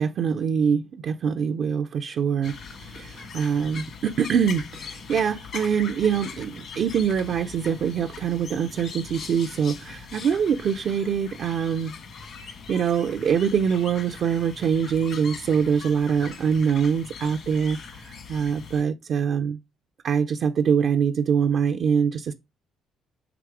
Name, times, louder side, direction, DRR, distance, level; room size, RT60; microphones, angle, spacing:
voice 1, 0.0-11.9 12.7-19.6 20.0-22.3, right 7 dB, 60° right, 0.5 m, -24 dB
sound 1, 2.4-18.8, left 5 dB, 65° left, 1.6 m, -41 dB
6.0 x 3.3 x 4.8 m
supercardioid pair, 65°, 0 cm